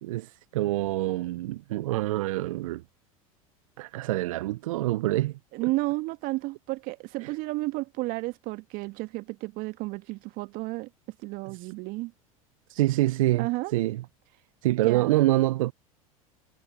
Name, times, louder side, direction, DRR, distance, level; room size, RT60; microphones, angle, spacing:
voice 1, 0.0-2.8 3.8-5.7 7.2-7.3 11.5-11.7 12.7-14.0 14.6-15.7, right 16 dB, 65° right, 1.1 m, -26 dB
voice 2, 5.5-10.9 11.2-12.1 13.3-13.7 14.8-15.1, right 22 dB, 50° right, 1.7 m, -32 dB
figure-of-eight pair, 80°, 18 cm